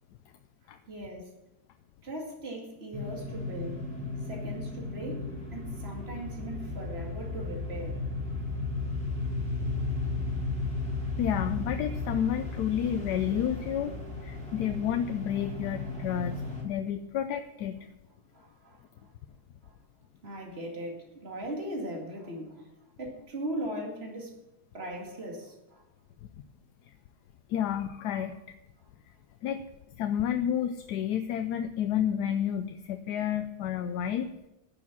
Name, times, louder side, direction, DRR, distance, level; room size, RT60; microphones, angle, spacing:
voice 1, 0.9-1.3 2.0-3.8 4.3-8.0 14.4-14.5 16.0-16.1 18.3-19.1 19.6-19.8 20.2-22.7 23.0-24.3 24.7-25.8 33.9-34.0, right 1 dB, 40° right, 0 dB, 2.5 m, -39 dB
sound 1, 2.9-16.6, left 3 dB, 5° left, 3.3 m, -35 dB
voice 2, 11.2-14.0 14.2-16.4 16.6-17.8 27.5-28.4 29.4-29.6 30.0-34.3, left 9 dB, 80° left, 9 dB, 1.2 m, -30 dB
11.0 x 7.1 x 7.2 m, 0.94 s
omnidirectional pair, 1.7 m